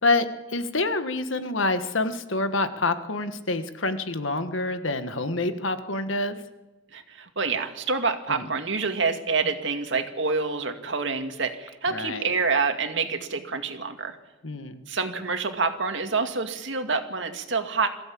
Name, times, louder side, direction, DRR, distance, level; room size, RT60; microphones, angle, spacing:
voice 1, 0.0-6.4 8.3-8.5 11.9-12.3 14.4-14.8, left 2 dB, 75° left, 10 dB, 1.6 m, -27 dB
voice 2, 6.9-14.1 14.9-17.9, right 4 dB, 65° right, 6 dB, 2.2 m, -27 dB
22.5 x 15.0 x 8.7 m, 1.1 s
head